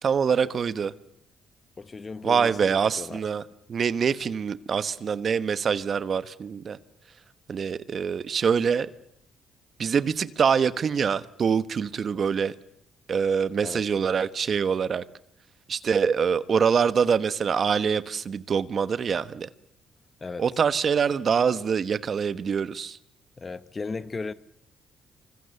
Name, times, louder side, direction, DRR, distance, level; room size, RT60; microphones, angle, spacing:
voice 1, 0.0-0.9 2.2-3.4 3.7-6.8 7.5-8.9 9.8-12.5 13.1-15.0 15.7-19.5 20.4-23.0, right 6 dB, 50° right, 1.2 m, -25 dB
voice 2, 1.8-3.2 13.6-13.9 20.2-20.5 23.4-24.3, left 4 dB, 30° left, 1.0 m, -36 dB
27.5 x 25.0 x 7.1 m
cardioid pair, 90°, 0 cm